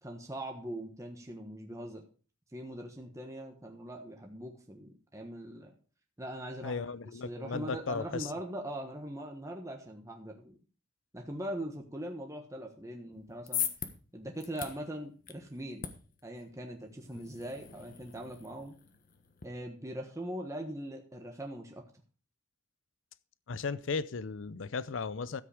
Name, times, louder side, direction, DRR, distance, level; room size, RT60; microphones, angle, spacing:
voice 1, 0.0-2.0 2.5-5.7 6.2-6.8 7.2-10.6 11.1-13.7 14.1-15.9 16.2-18.7 19.4-21.8, right 1 dB, 15° right, 1.3 m, -41 dB
voice 2, 6.6-8.3 23.5-25.4, left 4 dB, 80° left, 0.6 m, -36 dB
sound 1, 13.1-19.5, left 9 dB, 45° left, 1.3 m, -42 dB
13.0 x 7.9 x 4.9 m
head